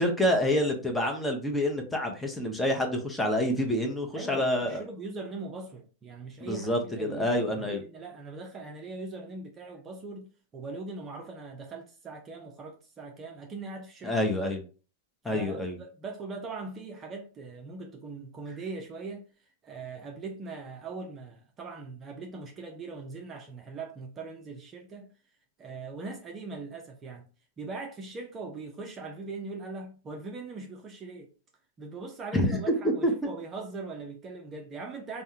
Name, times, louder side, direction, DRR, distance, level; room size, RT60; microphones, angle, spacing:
voice 1, 0.0-4.8 6.4-7.8 14.0-14.6 15.2-15.8 32.3-32.6 33.0-33.3, left 1 dB, 5° left, 0.8 m, -27 dB
voice 2, 4.1-14.3 15.3-19.3 19.6-25.1 25.6-27.3 27.6-31.3 31.8-35.2, right 3 dB, 25° right, 0.6 m, -41 dB
3.4 x 2.1 x 2.8 m
hypercardioid pair, 105°, 0 cm